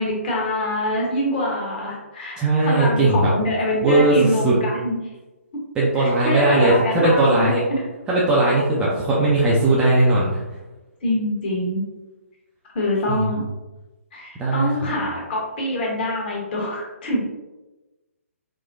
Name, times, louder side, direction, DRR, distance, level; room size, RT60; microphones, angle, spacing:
voice 1, 0.0-5.0 5.9-7.8 11.0-11.8 12.7-13.4 14.1-17.2, left 1 dB, 40° left, -3 dB, 1.1 m, -25 dB
voice 2, 2.4-3.3 3.8-4.6 5.8-7.6 8.1-10.4 13.1-13.2 14.4-15.0, right 2 dB, 10° right, -6 dB, 0.4 m, -18 dB
4.1 x 2.1 x 2.5 m, 1.1 s
figure-of-eight pair, 135°, 8 cm